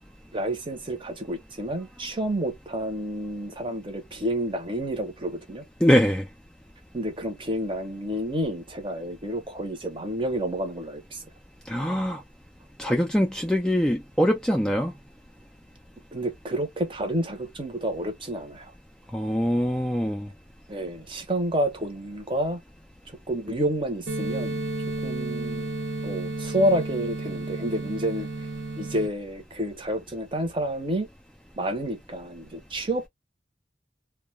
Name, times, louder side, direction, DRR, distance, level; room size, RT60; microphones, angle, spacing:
voice 1, 0.3-5.6 6.9-11.2 16.1-18.7 20.7-22.6 23.3-24.6 25.0-25.8 26.0-28.5 28.8-31.1 31.6-33.1, right 1 dB, 30° right, 0.7 m, -29 dB
voice 2, 5.8-6.3 11.7-12.2 12.8-14.9 19.1-20.3, equal, 5° left, 0.3 m, -23 dB
sound 1, 24.1-29.1, right 2 dB, 60° right, 0.7 m, -32 dB
2.2 x 2.1 x 3.0 m
head